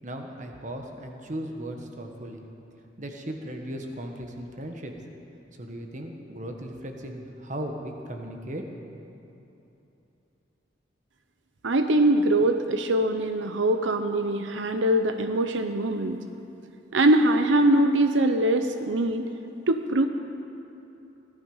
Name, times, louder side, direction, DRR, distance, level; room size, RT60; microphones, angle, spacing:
voice 1, 0.0-2.4 3.0-4.9 5.6-8.6, right 1 dB, 40° right, 3 dB, 1.4 m, -37 dB
voice 2, 11.6-16.2 16.9-19.3 19.7-20.0, right 1 dB, 90° right, 7 dB, 0.7 m, -22 dB
18.0 x 12.5 x 5.6 m, 3.0 s
head